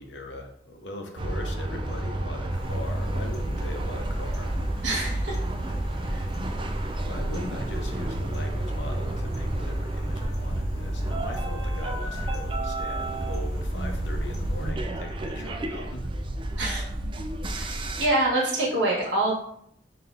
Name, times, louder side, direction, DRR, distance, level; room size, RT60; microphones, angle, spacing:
voice 1, 0.0-4.8 7.0-16.1, left 2 dB, 80° left, 3 dB, 0.7 m, -40 dB
sound 1, 1.2-18.1, right 1 dB, 30° right, 0.3 m, -30 dB
sound 2, 2.5-14.7, equal, 40° left, 1.2 m, -38 dB
voice 2, 4.8-5.4 6.1-6.2 16.6-16.8 17.6-17.7 18.0-19.4, right 2 dB, 75° right, -4 dB, 1.3 m, -25 dB
5.3 x 2.8 x 2.5 m, 0.71 s
head